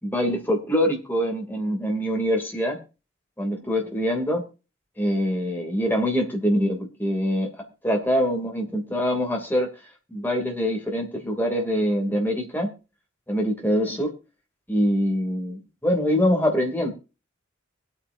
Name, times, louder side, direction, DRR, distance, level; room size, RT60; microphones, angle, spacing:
voice 1, 0.0-2.8 3.4-4.4 5.0-7.5 7.8-9.7 10.1-12.7 13.3-14.1 14.7-16.9, equal, 10° left, 1 dB, 2.8 m, -24 dB
24.0 x 8.8 x 2.7 m, 0.32 s
head